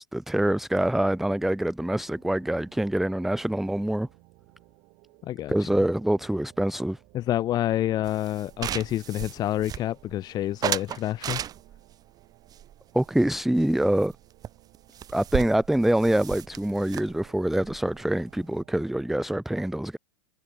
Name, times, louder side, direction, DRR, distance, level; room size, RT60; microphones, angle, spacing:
voice 1, 0.0-4.1 5.5-7.0 12.9-14.1 15.1-20.0, right 1 dB, ahead, 0.8 m, -25 dB
sound 1, 1.8-19.2, right 30 dB, 50° right, 7.9 m, -58 dB
voice 2, 5.2-5.8 7.1-11.4, left 13 dB, 35° left, 0.8 m, -28 dB
sound 2, 8.1-10.2 10.6-11.9 12.5-13.7 14.0-14.2 14.4-14.5 14.7-18.6, right 10 dB, 30° right, 4.1 m, -35 dB
figure-of-eight pair, 90°, 12 cm